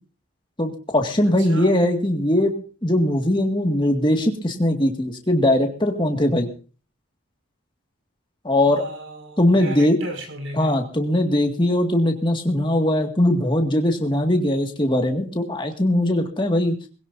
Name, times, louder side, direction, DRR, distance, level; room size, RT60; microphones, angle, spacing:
voice 1, 0.6-2.5 2.8-6.5 8.4-8.9 9.4-10.0 10.6-16.7, left 1 dB, 20° left, 3 dB, 2.1 m, -20 dB
voice 2, 1.2-1.7 8.7-10.8, right 1 dB, 65° right, 4 dB, 6.0 m, -36 dB
21.0 x 17.0 x 2.7 m, 0.39 s
head